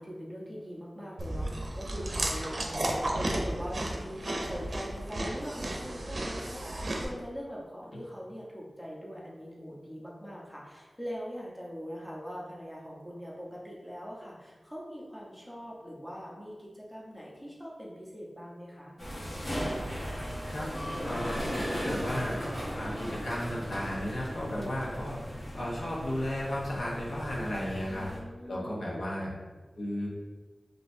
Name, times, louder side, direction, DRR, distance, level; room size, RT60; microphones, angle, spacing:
voice 1, 0.0-18.9 27.7-29.3, equal, 5° left, -5 dB, 1.1 m, -42 dB
Chewing mastication, 1.2-7.0, right 1 dB, 65° right, 0.6 m, -33 dB
sound 1, 19.0-28.2, equal, 45° left, 1.4 m, -37 dB
sound 2, 19.4-25.9, right 1 dB, 25° right, 0.4 m, -47 dB
voice 2, 21.0-21.4 21.7-22.4 22.7-25.2 25.5-28.1 28.5-29.3 29.8-30.1, left 1 dB, 90° left, -5 dB, 1.0 m, -34 dB
5.4 x 3.0 x 2.7 m, 1.2 s
wide cardioid pair, 70°, 0 cm